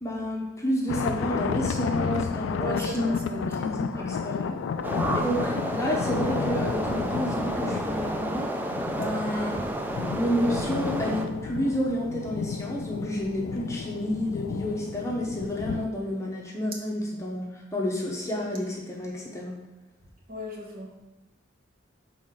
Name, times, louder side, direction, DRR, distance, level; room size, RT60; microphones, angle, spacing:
voice 1, 0.0-3.1 3.6-4.6 5.1-8.5 8.9-9.6 10.1-19.5, equal, 15° left, -2 dB, 0.8 m, -30 dB
sound 1, 0.9-15.9, left 6 dB, 75° left, 0.3 m, -32 dB
voice 2, 2.6-3.5 3.9-4.1 20.3-20.9, right 1 dB, 45° right, -1 dB, 1.1 m, -36 dB
sound 2, 4.8-11.2, right 1 dB, 10° right, 0.3 m, -31 dB
6.2 x 4.2 x 3.7 m, 1.0 s
head